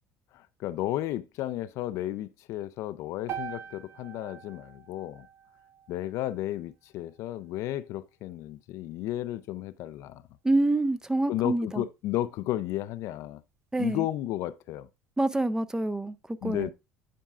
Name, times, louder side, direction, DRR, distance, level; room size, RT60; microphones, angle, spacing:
voice 1, 0.3-5.3 5.9-10.2 11.3-13.4 13.8-14.9 16.4-16.7, left 14 dB, 65° left, 0.4 m, -33 dB
sound 1, 3.3-7.5, right 9 dB, 50° right, 0.7 m, -43 dB
voice 2, 10.4-11.8 13.7-14.1 15.2-16.2 16.4-16.7, right 2 dB, 10° right, 0.5 m, -26 dB
10.0 x 4.6 x 2.4 m
hypercardioid pair, 70°, 6 cm